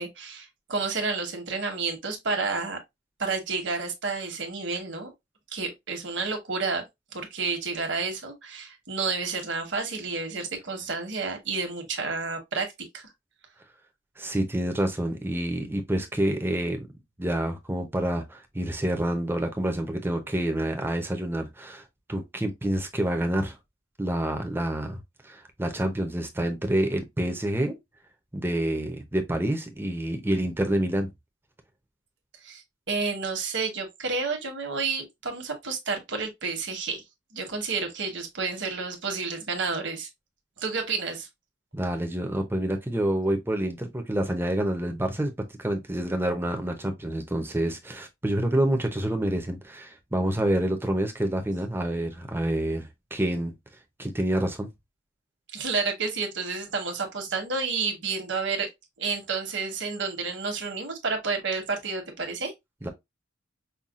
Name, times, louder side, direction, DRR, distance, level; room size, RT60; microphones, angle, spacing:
voice 1, 0.0-2.8 3.2-5.1 5.5-6.8 7.1-12.7 12.9-13.0 32.4-37.0 37.3-40.1 40.6-41.3 55.5-58.7 59.0-62.5, right 4 dB, 65° right, 1.2 m, -30 dB
voice 2, 14.2-16.9 17.2-21.8 22.1-23.6 24.0-27.8 28.3-31.1 41.7-45.3 45.6-53.5 54.0-54.7 62.8-62.9, right 1 dB, 10° right, 0.6 m, -28 dB
5.5 x 2.3 x 2.4 m
head